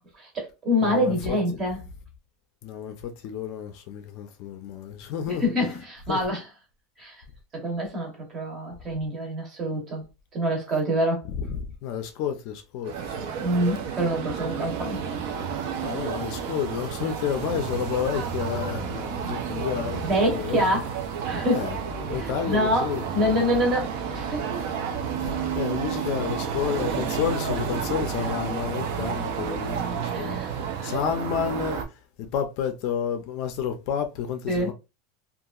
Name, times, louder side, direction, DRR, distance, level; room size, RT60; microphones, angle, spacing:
voice 1, 0.1-1.8 5.3-6.5 7.0-7.2 7.5-10.0 10.3-11.2 13.4-15.0 20.0-20.9 21.2-21.7 22.2-24.6 26.8-26.9 30.1-30.5 30.8-30.9 34.5-34.7, equal, 20° right, 0.9 m, -26 dB
voice 2, 0.8-1.4 2.6-5.5 6.1-6.2 11.3-13.3 15.8-20.6 21.5-23.0 25.2-34.7, left 8 dB, 45° left, 0.4 m, -31 dB
sound 1, 12.8-31.8, right 7 dB, 55° right, 0.5 m, -31 dB
2.8 x 2.4 x 2.3 m
supercardioid pair, 180°, 0 cm